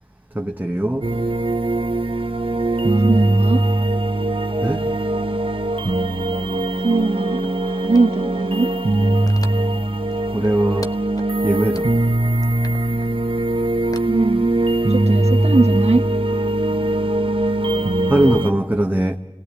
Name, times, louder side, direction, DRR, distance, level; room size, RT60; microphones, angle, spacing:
voice 1, 0.3-1.1 4.6-4.8 10.3-11.0 11.4-11.9 13.8-13.9 14.8-14.9 16.7-19.2, right 1 dB, 20° right, 1.0 m, -22 dB
sound 1, 1.0-18.5, right 2 dB, 55° right, 1.1 m, -20 dB
voice 2, 3.0-3.6 6.8-7.4 7.8-8.7 14.1-14.5 14.9-16.0, right 3 dB, 90° right, 1.0 m, -20 dB
sound 2, 7.4-8.7 9.1-9.8 10.1-11.3 11.8-11.9 12.3-13.1 13.9-14.9 15.2-15.3, left 2 dB, 35° left, 1.0 m, -39 dB
27.0 x 18.5 x 8.4 m
wide cardioid pair, 45°, 11 cm